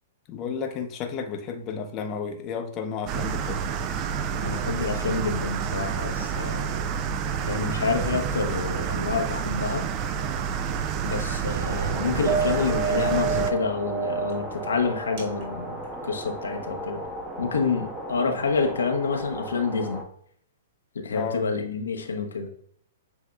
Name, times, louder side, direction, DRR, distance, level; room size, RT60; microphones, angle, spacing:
voice 1, 0.3-3.6 21.1-21.5, left 6 dB, 35° left, 5 dB, 0.7 m, -32 dB
sound 1, 3.1-13.5, right 7 dB, 35° right, 0.3 m, -29 dB
voice 2, 4.4-6.7 7.5-9.9 11.0-17.0 17.4-20.0 20.9-22.5, left 4 dB, 90° left, 4 dB, 0.7 m, -28 dB
sound 2, 8.6-9.1 10.7-10.8 12.2-16.6 17.3-17.5, right 6 dB, 50° right, 1.5 m, -30 dB
sound 3, 11.6-20.0, equal, 10° right, 0.9 m, -36 dB
7.2 x 2.8 x 2.3 m, 0.62 s
hypercardioid pair, 130°, 0 cm